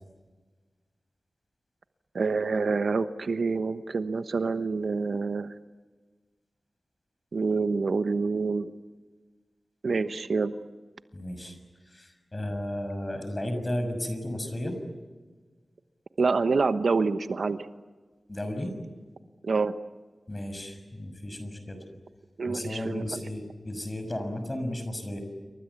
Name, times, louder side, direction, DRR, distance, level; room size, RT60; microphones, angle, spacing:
voice 1, 2.1-5.5 7.3-8.7 9.8-10.5 16.2-17.7 19.4-19.7 22.4-23.2, right 4 dB, 70° right, 10 dB, 1.1 m, -27 dB
voice 2, 11.1-11.6 11.9-14.8 18.3-18.7 20.3-21.8 22.5-25.2, left 1 dB, 25° left, 7 dB, 6.2 m, -34 dB
29.0 x 24.0 x 8.4 m, 1.4 s
wide cardioid pair, 110°, 0 cm